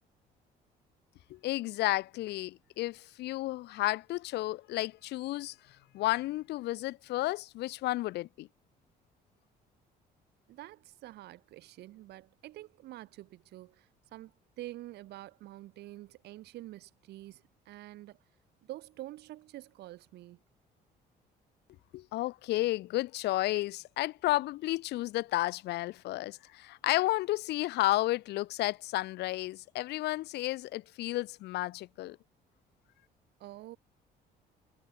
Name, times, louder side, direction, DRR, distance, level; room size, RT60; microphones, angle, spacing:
voice 1, 1.3-8.5 21.9-32.2, left 17 dB, 80° left, 4.1 m, -32 dB
voice 2, 10.5-18.2 18.6-20.4 33.4-33.8, right 16 dB, 75° right, 5.8 m, -47 dB
cardioid pair, 110°, 17 cm